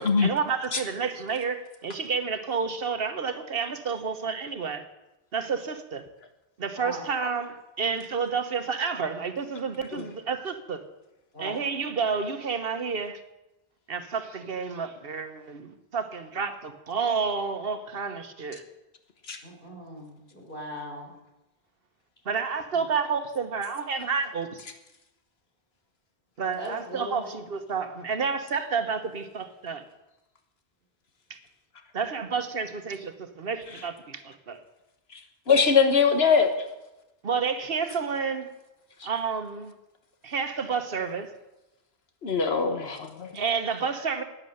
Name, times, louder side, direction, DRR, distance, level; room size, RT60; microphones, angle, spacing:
voice 1, 0.0-4.8 5.3-6.0 6.6-10.8 11.4-13.2 13.9-18.6 22.3-24.6 26.4-29.8 31.9-34.6 37.2-38.5 39.0-39.7 40.2-41.3 43.3-44.2, right 5 dB, 65° right, 1.3 m, -30 dB
voice 2, 19.4-21.1 22.7-22.8 26.6-27.3, equal, 55° left, 4.1 m, -39 dB
voice 3, 35.5-36.5 42.2-43.3, left 5 dB, 70° left, 1.6 m, -21 dB
11.0 x 9.7 x 7.8 m
omnidirectional pair, 1.1 m